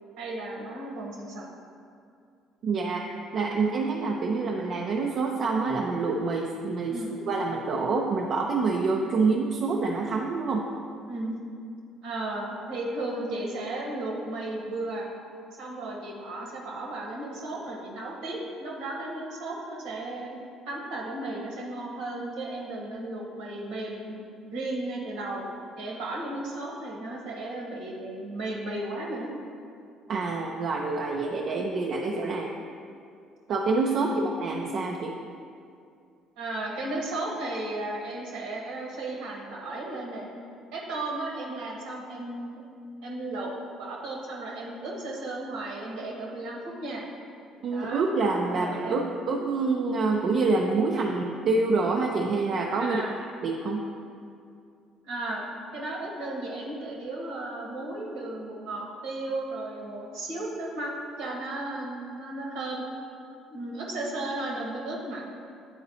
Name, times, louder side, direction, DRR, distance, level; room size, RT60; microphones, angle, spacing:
voice 1, 0.2-1.4 6.9-7.1 11.1-11.3 12.0-15.1 15.6-20.4 20.7-25.4 25.8-29.3 33.9-34.3 36.4-40.3 40.7-42.6 43.0-43.5 43.8-47.0 47.7-48.0 48.5-49.2 52.8-53.1 55.0-55.5 55.7-62.8 63.5-65.3, right 2 dB, 75° right, -2 dB, 1.2 m, -35 dB
voice 2, 2.6-3.0 3.3-7.0 7.3-10.6 30.1-32.5 33.5-35.1 47.6-53.0 53.4-53.8, right 3 dB, 55° right, 0 dB, 0.4 m, -26 dB
9.3 x 3.9 x 2.8 m, 2.4 s
hypercardioid pair, 55°, 0 cm